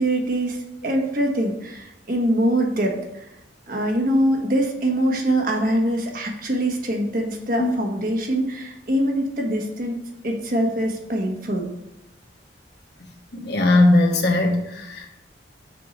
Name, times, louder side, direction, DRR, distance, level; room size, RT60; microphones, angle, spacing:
voice 1, 0.0-3.2 3.7-10.0 10.2-11.7, right 1 dB, 50° right, 1 dB, 1.3 m, -23 dB
voice 2, 13.3-15.2, left 2 dB, 60° left, 2 dB, 1.3 m, -19 dB
6.9 x 4.6 x 5.3 m, 0.89 s
head